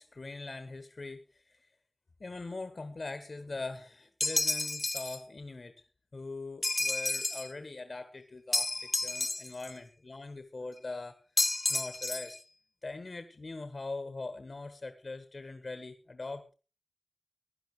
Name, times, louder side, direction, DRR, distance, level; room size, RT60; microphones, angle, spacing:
voice 1, 0.0-1.7 2.2-5.7 6.1-12.3 12.8-16.5, left 3 dB, 75° left, 9 dB, 1.4 m, -42 dB
sound 1, 4.2-5.2 6.6-7.5 8.5-9.7 11.4-12.4, left 2 dB, 45° left, 0.8 m, -31 dB
16.5 x 10.5 x 4.9 m, 0.35 s
wide cardioid pair, 45°, 0 cm